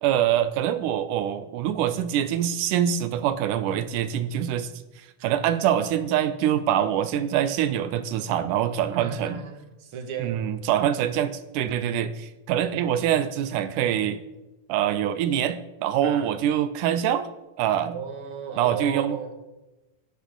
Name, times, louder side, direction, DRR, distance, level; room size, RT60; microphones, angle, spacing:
voice 1, 0.0-4.7 5.0-9.4 10.2-14.2 14.7-17.3 17.6-18.0 18.6-19.2, right 10 dB, 85° right, 11 dB, 2.4 m, -24 dB
voice 2, 8.9-10.4 12.8-12.9 16.0-16.3 17.8-19.3, right 6 dB, 45° right, 5 dB, 2.5 m, -35 dB
22.5 x 12.0 x 3.9 m, 1.0 s
omnidirectional pair, 3.6 m